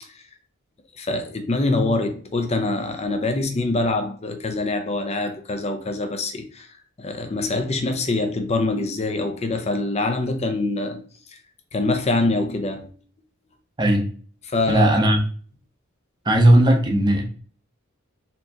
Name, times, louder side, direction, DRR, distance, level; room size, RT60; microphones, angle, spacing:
voice 1, 1.0-6.7 7.0-11.0 11.7-12.9 14.5-14.9, left 2 dB, 30° left, 0.6 m, -24 dB
voice 2, 14.7-15.2 16.2-17.3, right 1 dB, 20° right, 0.7 m, -16 dB
4.3 x 2.9 x 2.8 m
head